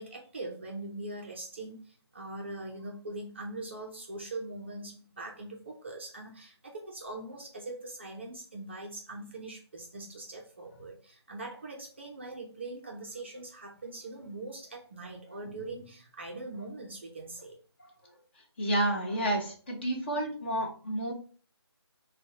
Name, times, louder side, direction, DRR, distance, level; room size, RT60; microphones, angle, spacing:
voice 1, 0.0-17.6, right 2 dB, 25° right, 0 dB, 0.5 m, -42 dB
voice 2, 18.3-21.1, right 1 dB, 25° left, 0 dB, 0.7 m, -30 dB
5.3 x 2.1 x 2.8 m, 0.39 s
figure-of-eight pair, 155°, 14 cm